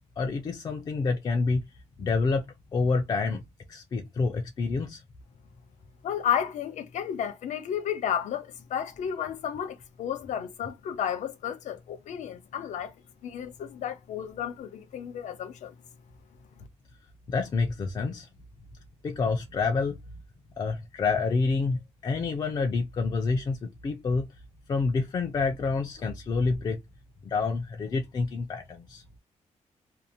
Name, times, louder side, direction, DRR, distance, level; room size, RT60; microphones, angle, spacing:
voice 1, 0.2-1.6 2.0-2.4 2.7-3.4 3.7-5.0 17.3-18.3 19.0-20.0 20.6-24.3 24.7-26.8 27.2-29.0, left 4 dB, 35° left, 0.4 m, -28 dB
voice 2, 6.0-12.9 13.2-15.7, left 9 dB, 85° left, 0.6 m, -32 dB
2.6 x 2.0 x 2.7 m
wide cardioid pair, 170°, 12 cm